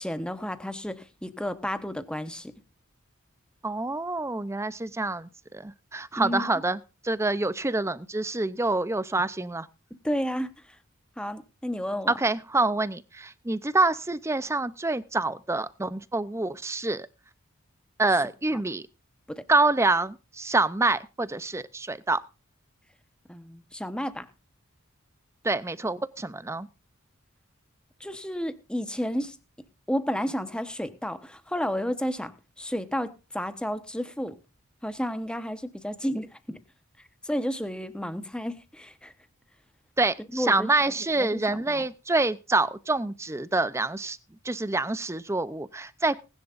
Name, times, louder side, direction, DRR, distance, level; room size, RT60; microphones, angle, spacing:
voice 1, 0.0-2.5 6.2-6.5 10.0-10.5 11.2-12.1 19.3-19.4 23.3-24.3 28.0-29.4 29.9-34.4 34.8-36.6 37.2-39.1 40.3-40.9 41.2-41.9, equal, 5° left, 1.1 m, -32 dB
voice 2, 3.6-9.7 12.1-17.1 18.0-18.8 19.5-22.2 25.4-26.7 40.0-44.2 44.4-46.2, right 2 dB, 15° right, 0.6 m, -26 dB
19.5 x 10.5 x 2.5 m
head